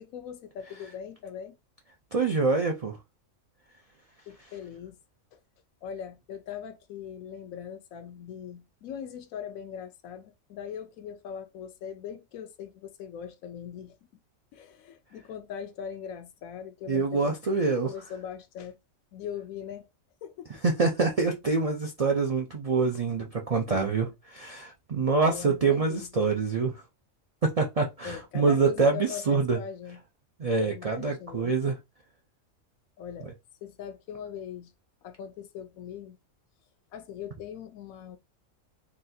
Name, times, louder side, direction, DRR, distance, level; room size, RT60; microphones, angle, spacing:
voice 1, 0.0-1.6 4.3-5.0 5.3-5.4 5.8-14.0 14.5-18.8 19.1-19.9 20.2-20.5 23.7-23.9 25.3-26.1 28.0-30.0 30.6-31.6 33.0-33.3 33.6-34.7 35.0-36.2 36.9-38.2, left 8 dB, 85° left, 1.1 m, -40 dB
voice 2, 2.1-3.0 16.9-17.9 20.6-26.7 27.4-29.6 30.4-31.8, right 4 dB, 65° right, 0.3 m, -26 dB
3.9 x 2.4 x 2.7 m
omnidirectional pair, 1.4 m